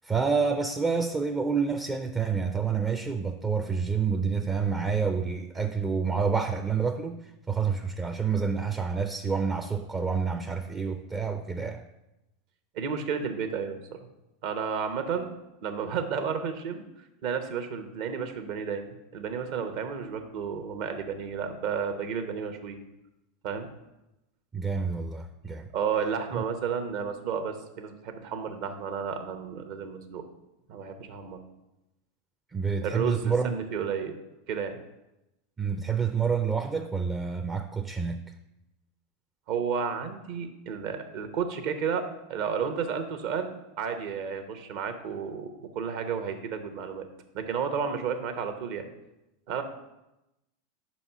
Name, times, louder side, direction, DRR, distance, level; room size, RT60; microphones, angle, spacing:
voice 1, 0.0-7.2 7.5-11.8 24.5-25.7 26.4-26.5 32.5-33.5 35.6-38.2, right 5 dB, 20° right, 0.4 m, -28 dB
voice 2, 12.7-14.0 14.4-15.3 15.6-16.8 17.2-22.8 23.4-23.7 25.7-30.2 30.7-31.4 32.8-34.1 34.5-34.8 39.5-43.5 43.8-47.1 47.3-48.9 49.5-49.6, right 6 dB, 55° right, 0.8 m, -32 dB
5.4 x 4.2 x 5.8 m
hypercardioid pair, 90°, 0 cm